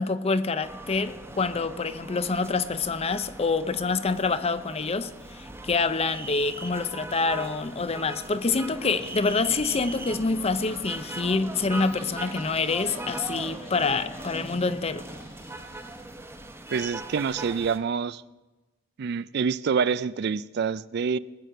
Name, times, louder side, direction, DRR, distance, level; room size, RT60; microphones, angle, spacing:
voice 1, 0.0-15.1, left 4 dB, 35° left, 0.6 m, -26 dB
sound 1, 0.6-17.8, right 2 dB, 15° right, 1.0 m, -40 dB
sound 2, 8.2-16.1, left 1 dB, 80° left, 5.8 m, -49 dB
voice 2, 16.7-18.2 19.0-21.2, right 6 dB, 60° right, 0.4 m, -27 dB
19.5 x 6.7 x 7.6 m
head